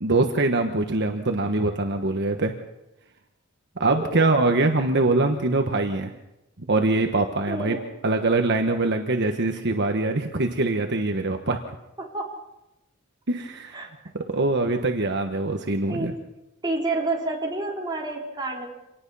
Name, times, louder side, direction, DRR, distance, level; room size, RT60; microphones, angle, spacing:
voice 1, 0.0-2.5 3.8-6.1 6.7-7.7 8.0-11.6 13.3-13.9 14.1-16.1, right 2 dB, 55° right, 5 dB, 1.3 m, -23 dB
voice 2, 4.0-4.4 7.5-7.8 12.0-12.4 13.7-13.9 15.9-16.2 16.6-18.7, right 2 dB, 20° right, -1 dB, 3.9 m, -29 dB
26.5 x 19.0 x 5.6 m, 0.93 s
head